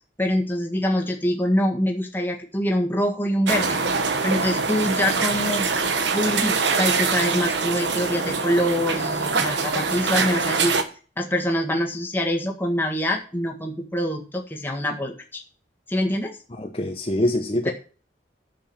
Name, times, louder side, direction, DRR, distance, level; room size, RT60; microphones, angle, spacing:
voice 1, 0.2-3.8 4.2-5.6 6.1-10.8 11.2-15.4 15.9-16.4 17.6-17.7, equal, 10° left, 1 dB, 1.6 m, -24 dB
sound 1, 3.5-10.8, right 4 dB, 90° right, 1.2 m, -24 dB
voice 2, 16.6-17.7, left 1 dB, 30° left, 2 dB, 1.0 m, -24 dB
7.5 x 7.0 x 7.0 m, 0.38 s
head